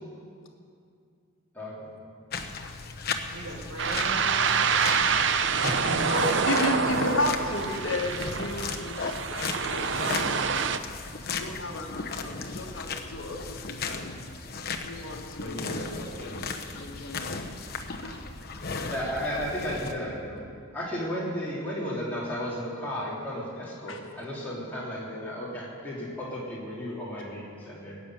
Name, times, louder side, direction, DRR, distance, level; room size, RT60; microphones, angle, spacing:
voice 1, 1.5-1.9 5.6-6.1 15.3-16.4 18.8-20.5 20.7-28.0, equal, 10° left, -7 dB, 3.3 m, -34 dB
sound 1, 2.3-19.9, left 4 dB, 45° left, 0.9 m, -36 dB
voice 2, 3.3-4.7 15.6-16.9 18.1-18.3, right 1 dB, 70° right, -5 dB, 1.9 m, -42 dB
sound 2, 3.8-10.8, right 6 dB, 55° right, 0.6 m, -26 dB
voice 3, 5.7-10.7 11.3-14.2 14.8-15.9 16.2-16.3 16.7-17.3 18.0-18.3 23.9-24.0, left 2 dB, 65° left, 2 dB, 1.5 m, -33 dB
18.5 x 7.1 x 9.3 m, 2.3 s
head